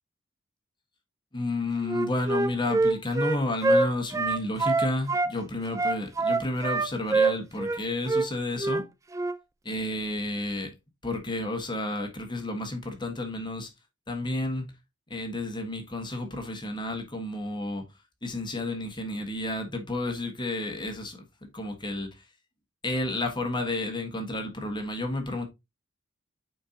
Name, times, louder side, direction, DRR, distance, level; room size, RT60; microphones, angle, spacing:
voice 1, 1.3-8.8 9.6-10.7 11.0-13.7 14.1-14.7 15.1-17.8 18.2-21.2 21.5-22.2 22.8-25.5, left 2 dB, 20° left, 1.5 m, -31 dB
Wind instrument woodwind instrument, 1.8-5.3 5.7-7.8 8.1-8.3 8.6-8.8 9.1-9.4, right 3 dB, 15° right, 0.3 m, -25 dB
9.6 x 4.7 x 2.8 m
head